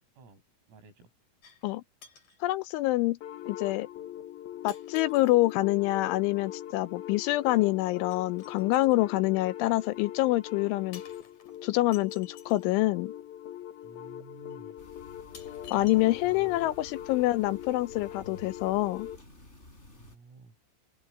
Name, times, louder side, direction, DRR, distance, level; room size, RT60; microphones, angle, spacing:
voice 1, 0.7-1.1 13.8-14.8 15.7-16.7 20.0-20.5, right 4 dB, 85° right, 10.0 m, -52 dB
sound 1, 1.4-1.7 2.0-2.4 3.4-3.5 4.7-5.6 8.1-9.0 10.9-12.7 13.8-13.9 14.5-14.6 15.3-16.6 16.9-17.0, left 7 dB, 40° left, 4.1 m, -53 dB
voice 2, 2.4-3.2 3.5-3.9 4.6-11.0 11.6-13.1 15.7-19.1, left 18 dB, 80° left, 2.9 m, -26 dB
sound 2, 3.2-19.2, left 11 dB, 60° left, 2.7 m, -42 dB
sound 3, 14.8-20.2, left 1 dB, 15° left, 5.8 m, -52 dB
open air
omnidirectional pair, 5.9 m